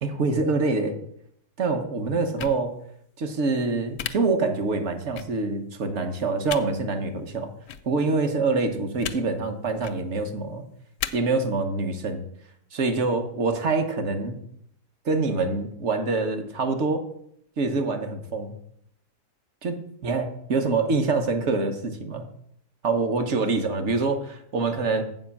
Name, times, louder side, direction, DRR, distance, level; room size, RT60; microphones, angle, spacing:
voice 1, 0.0-1.0 1.6-2.8 3.2-7.5 7.8-10.6 11.1-12.2 12.7-14.4 15.0-17.0 17.6-18.5 19.6-22.3 22.8-25.0, right 3 dB, 50° right, 6 dB, 1.2 m, -25 dB
sound 1, 2.4-2.6 4.0-4.1 5.2-5.3 6.5-6.6 7.7-7.8 9.0-9.2 9.7-10.0 11.0-11.1, left 10 dB, 65° left, 0.8 m, -32 dB
7.8 x 5.1 x 7.1 m, 0.70 s
omnidirectional pair, 1.8 m